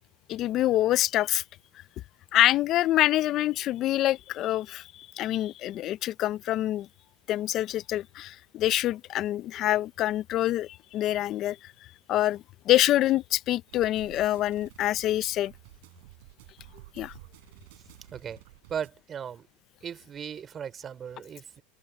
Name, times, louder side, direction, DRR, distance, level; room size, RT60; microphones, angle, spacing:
voice 1, 0.3-1.4 2.3-6.9 7.3-11.6 12.1-15.5 17.0-17.1, left 14 dB, 40° left, 0.5 m, -26 dB
sound 1, 13.7-18.9, right 22 dB, 70° right, 6.5 m, -51 dB
voice 2, 18.7-19.5 19.8-21.6, right 8 dB, 25° right, 3.6 m, -37 dB
open air
supercardioid pair, 135°, 0 cm